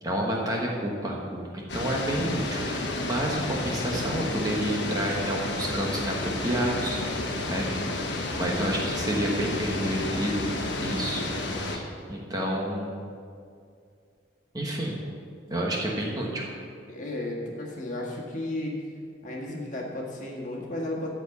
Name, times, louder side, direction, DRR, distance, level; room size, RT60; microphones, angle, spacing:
voice 1, 0.0-7.0 7.5-7.7 8.4-10.5 10.8-11.2 11.7-13.1 14.5-15.1 15.5-16.5, right 1 dB, 20° right, -2 dB, 1.2 m, -29 dB
sound 1, 1.7-11.8, left 2 dB, 65° left, 1.2 m, -31 dB
voice 2, 16.9-18.7 19.2-21.1, left 1 dB, 40° left, -2 dB, 1.6 m, -33 dB
13.5 x 4.7 x 7.0 m, 2.3 s
head